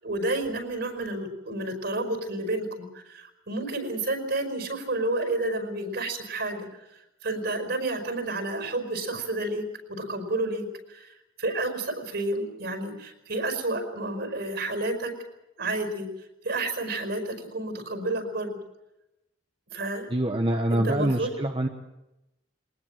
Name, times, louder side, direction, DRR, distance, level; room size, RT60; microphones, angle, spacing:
voice 1, 0.0-6.8 7.2-15.2 15.6-16.1 16.4-18.6 19.7-20.1 20.7-21.3, right 2 dB, 55° right, 7 dB, 5.1 m, -30 dB
voice 2, 20.1-21.7, right 1 dB, 25° right, 4 dB, 1.2 m, -25 dB
22.0 x 20.0 x 7.4 m, 0.90 s
head